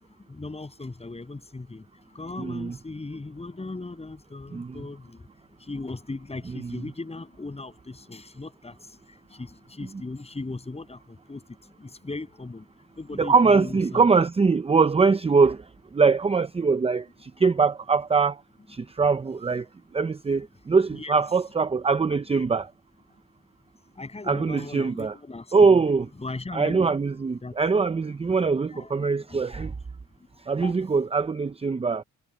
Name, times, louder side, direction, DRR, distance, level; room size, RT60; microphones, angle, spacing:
voice 1, 0.2-5.3 5.6-12.7 12.9-14.1 20.9-21.1 23.9-25.8 26.2-26.9 27.4-27.6 28.7-29.7 30.6-30.8, left 3 dB, 20° left, 7.7 m, -38 dB
voice 2, 2.4-2.8 4.5-4.8 6.5-6.8 13.2-15.6 15.9-18.4 18.7-19.6 19.9-22.7 24.3-25.1 25.5-26.1 26.5-29.7 30.5-32.0, right 4 dB, 20° right, 0.7 m, -22 dB
cardioid pair, 90°, 30 cm